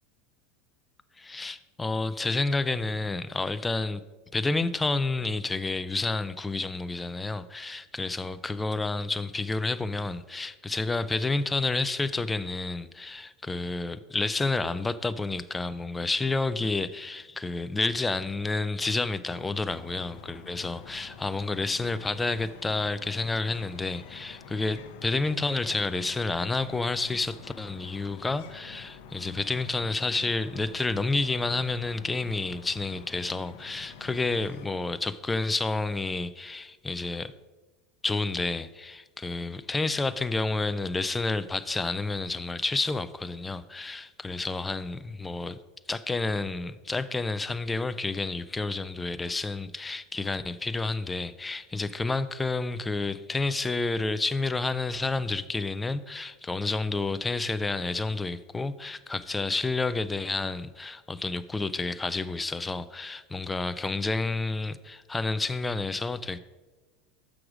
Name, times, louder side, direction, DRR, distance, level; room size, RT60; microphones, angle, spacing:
voice 1, 1.2-4.0 4.3-37.3 38.0-45.6 45.9-66.4, left 3 dB, 10° left, 0.3 m, -30 dB
sound 1, 19.3-34.7, left 6 dB, 70° left, 0.7 m, -48 dB
6.3 x 6.1 x 4.9 m
supercardioid pair, 135°, 0 cm